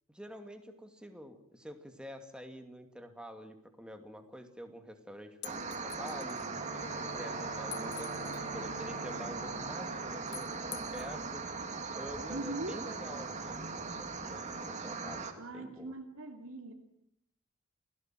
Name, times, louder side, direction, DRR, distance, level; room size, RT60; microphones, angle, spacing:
voice 1, 0.1-11.4 11.9-15.9, equal, 5° right, 6 dB, 2.4 m, -48 dB
sound 1, 5.4-6.5 7.7-8.5 10.3-11.1, left 14 dB, 50° left, 1.2 m, -46 dB
sound 2, 5.4-15.3, right 4 dB, 35° right, 2.5 m, -39 dB
Bowed string instrument, 6.5-11.3, equal, 30° left, 3.8 m, -48 dB
voice 2, 12.3-12.8 15.4-16.7, right 2 dB, 65° right, 4 dB, 2.6 m, -41 dB
29.0 x 17.0 x 7.6 m, 0.72 s
head